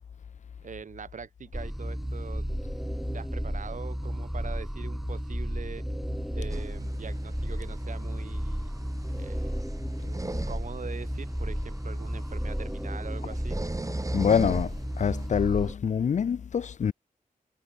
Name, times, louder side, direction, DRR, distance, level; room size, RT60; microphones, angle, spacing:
voice 1, 0.6-2.5 3.1-5.8 6.3-8.7 9.1-9.6 10.0-13.6, right 6 dB, 60° right, 3.2 m, -43 dB
sound 1, 1.5-15.7, equal, ahead, 2.4 m, -33 dB
sound 2, 6.5-15.3, right 2 dB, 20° right, 2.4 m, -40 dB
voice 2, 14.1-16.9, left 7 dB, 55° left, 0.6 m, -25 dB
wide cardioid pair, 125°, 15 cm